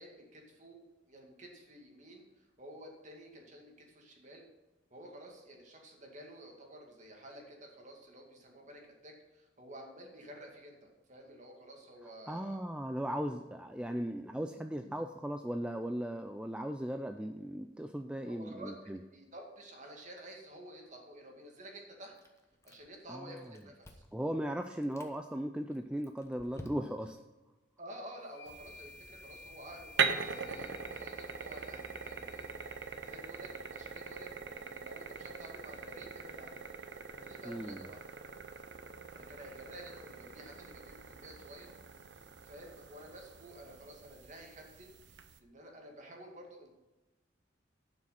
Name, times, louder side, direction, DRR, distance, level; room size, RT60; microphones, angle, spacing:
voice 1, 0.0-4.5 4.9-12.6 18.3-18.7 19.1-22.1 22.6-24.0 27.8-32.5 33.1-34.3 34.7-36.6 37.1-38.0 39.1-41.7 42.4-46.7, right 1 dB, 40° right, 1 dB, 2.3 m, -51 dB
voice 2, 12.3-19.0 23.1-23.4 24.1-27.2 37.4-37.8, equal, 5° right, 6 dB, 0.4 m, -37 dB
Chewing mastication, 22.2-23.1 23.4-24.2 24.7-25.2 25.7-27.2, left 1 dB, 15° left, 0.9 m, -52 dB
sound 1, 28.3-32.5, left 3 dB, 55° left, 1.5 m, -55 dB
sound 2, 28.5-45.4, right 5 dB, 60° right, 0.8 m, -41 dB
11.5 x 6.2 x 5.8 m, 1.1 s
head